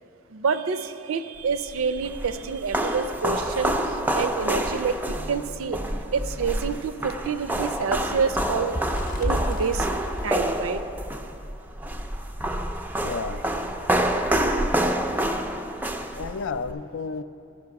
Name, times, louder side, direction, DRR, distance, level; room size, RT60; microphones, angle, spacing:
voice 1, 0.3-5.8 6.1-8.8 9.2-9.9 10.2-10.8, right 5 dB, 85° right, 11 dB, 0.5 m, -28 dB
sound 1, 1.7-16.7, right 1 dB, 10° right, 0.3 m, -27 dB
Bird, 8.3-11.5 12.0-12.1 12.4-12.7 13.5-13.6, equal, 40° left, 0.7 m, -31 dB
voice 2, 13.0-13.4 16.1-17.2, left 5 dB, 70° left, 12 dB, 0.4 m, -31 dB
13.5 x 5.4 x 5.8 m, 2.7 s
head